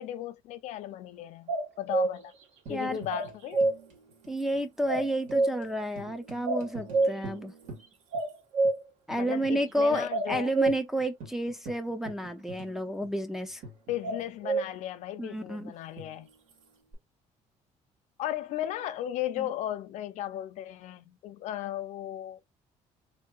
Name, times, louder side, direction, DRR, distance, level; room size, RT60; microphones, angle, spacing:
voice 1, 0.0-2.3 2.7-3.7 9.2-10.5 13.9-16.3 18.2-22.4, left 12 dB, 65° left, 0.5 m, -36 dB
sound 1, 1.5-2.2 3.1-3.7 4.9-5.6 6.5-7.2 8.1-8.8 10.1-10.7 14.0-14.7, right 3 dB, 60° right, 0.8 m, -26 dB
Tambourine, 2.7-8.3 8.6-8.7 9.1-9.6 9.9-10.0 10.3-14.4 16.0-16.9, right 2 dB, 80° right, 1.6 m, -48 dB
voice 2, 4.3-7.5 9.1-13.6 15.2-15.7 19.4-19.5, right 1 dB, 5° right, 0.4 m, -31 dB
3.6 x 2.7 x 2.3 m
cardioid pair, 155°, 13 cm